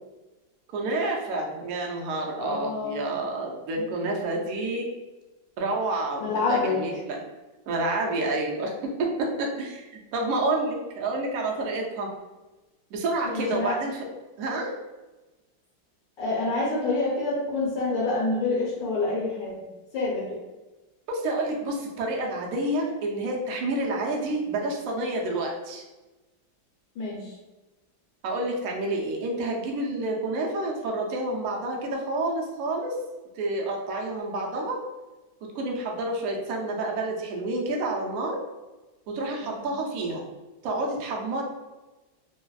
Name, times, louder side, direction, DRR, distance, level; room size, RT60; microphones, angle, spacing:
voice 1, 0.7-4.9 5.6-7.2 7.7-12.1 12.9-14.1 14.4-14.7 21.1-25.8 28.2-33.0 33.4-34.8 35.5-38.4 39.1-40.2 40.6-41.4, right 2 dB, 80° right, 0 dB, 0.8 m, -29 dB
voice 2, 2.4-3.1 6.2-7.0 13.2-13.8 16.2-19.6 19.9-20.4 27.0-27.3 39.4-39.7, left 3 dB, 75° left, -5 dB, 1.3 m, -27 dB
3.2 x 2.0 x 2.3 m, 1.1 s
omnidirectional pair, 2.1 m